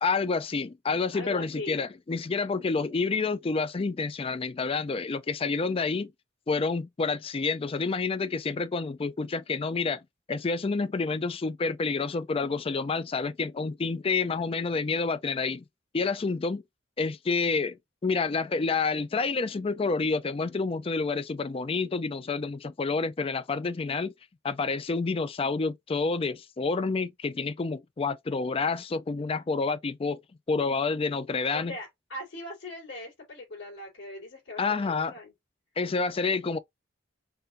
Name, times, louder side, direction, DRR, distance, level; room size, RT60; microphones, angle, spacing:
voice 1, 0.0-6.1 6.5-10.0 10.3-15.6 15.9-16.6 17.0-17.8 18.0-24.1 24.4-30.2 30.5-31.7 34.6-35.1 35.8-36.6, left 4 dB, 30° left, 0.4 m, -28 dB
voice 2, 1.1-1.9 31.5-35.3, left 1 dB, 85° left, 3.4 m, -40 dB
5.6 x 2.6 x 2.6 m
head